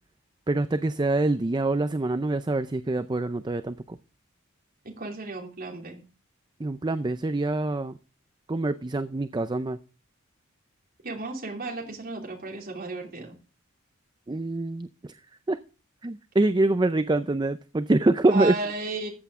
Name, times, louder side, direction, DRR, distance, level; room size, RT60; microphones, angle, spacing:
voice 1, 0.5-4.0 6.6-7.9 8.5-9.8 14.3-15.1 15.5-15.6 16.0-18.5, right 2 dB, 20° right, 11 dB, 0.5 m, -25 dB
voice 2, 4.8-6.0 11.0-13.3 18.3-19.1, right 3 dB, 45° right, 0 dB, 3.0 m, -33 dB
14.0 x 8.1 x 3.6 m, 0.35 s
head